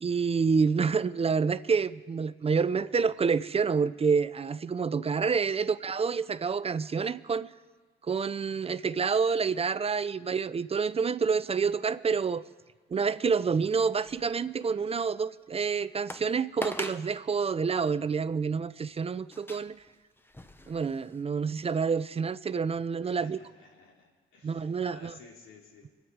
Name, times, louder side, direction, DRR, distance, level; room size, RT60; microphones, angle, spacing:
voice 1, 0.0-7.5 8.1-12.4 12.9-19.8 20.7-23.4 24.4-25.1, right 5 dB, 30° right, 0.5 m, -28 dB
sound 1, 14.1-14.6 15.2-15.3 16.1-16.3 16.6-17.1 17.8-18.0 19.3-21.2 21.7-21.8, left 1 dB, 10° left, 1.0 m, -41 dB
voice 2, 23.0-25.9, left 4 dB, 90° left, 3.3 m, -53 dB
27.0 x 9.5 x 4.7 m
cardioid pair, 90°, 20 cm